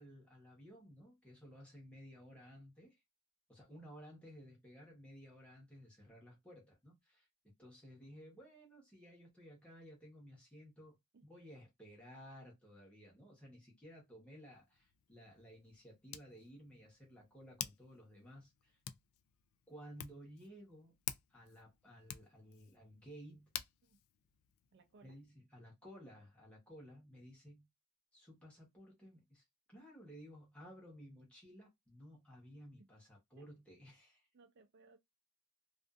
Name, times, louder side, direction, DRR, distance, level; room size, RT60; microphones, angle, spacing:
voice 1, 0.0-3.0 3.5-7.3 7.6-11.0 11.2-18.8 19.7-20.9 21.3-23.5 25.0-27.7 28.1-34.3, equal, 5° left, 1.0 m, -56 dB
Hands, 14.5-25.3, left 11 dB, 65° left, 0.3 m, -51 dB
voice 2, 24.7-25.2 32.8-32.9 33.4-33.5 34.3-35.0, right 3 dB, 55° right, 0.4 m, -64 dB
2.5 x 2.5 x 2.3 m
head